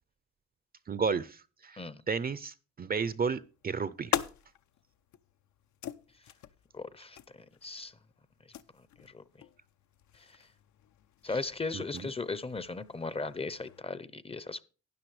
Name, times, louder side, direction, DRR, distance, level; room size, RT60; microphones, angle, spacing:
voice 1, 0.9-4.1 11.3-11.4 11.7-12.1, right 5 dB, 30° right, 0.5 m, -33 dB
sound 1, 3.4-13.8, left 11 dB, 70° left, 0.7 m, -43 dB
voice 2, 6.7-7.2 7.6-7.9 9.0-9.2 11.2-14.6, left 3 dB, 20° left, 0.6 m, -37 dB
12.0 x 9.8 x 3.2 m
cardioid pair, 90°, 30 cm